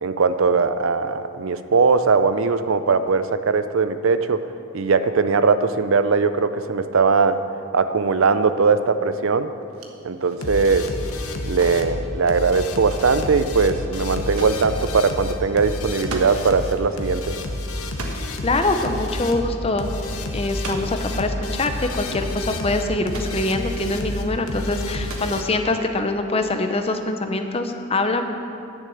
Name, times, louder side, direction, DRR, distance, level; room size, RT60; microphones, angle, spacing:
voice 1, 0.0-4.4 4.7-7.4 7.7-9.5 10.0-10.9 11.4-17.4, right 4 dB, 60° right, 11 dB, 0.5 m, -20 dB
sound 1, 9.6-16.4 16.7-16.8 17.1-18.4 19.1-19.4 19.7-19.8 20.5-21.2 22.0-22.1 22.3-23.5 24.2-24.6 24.9-25.8, right 3 dB, 80° right, 1.3 m, -40 dB
sound 2, 10.4-25.4, left 2 dB, 75° left, 1.1 m, -30 dB
voice 2, 18.4-19.9 20.3-28.2, left 2 dB, 25° left, 6 dB, 0.7 m, -24 dB
10.5 x 6.6 x 8.5 m, 2.6 s
head